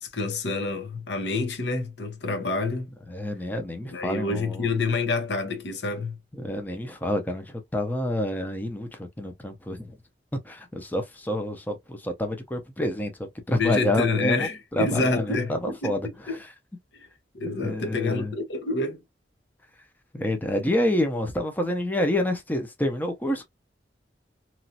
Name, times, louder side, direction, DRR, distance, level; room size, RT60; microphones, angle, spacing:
voice 1, 0.0-2.9 3.9-6.2 13.6-15.9 16.3-16.4 16.9-17.1 17.3-19.0, left 3 dB, 75° left, 0.9 m, -27 dB
voice 2, 3.1-4.7 6.3-10.0 10.4-16.4 17.6-18.3 20.1-23.4, left 1 dB, 10° left, 0.6 m, -28 dB
3.0 x 2.5 x 2.7 m
head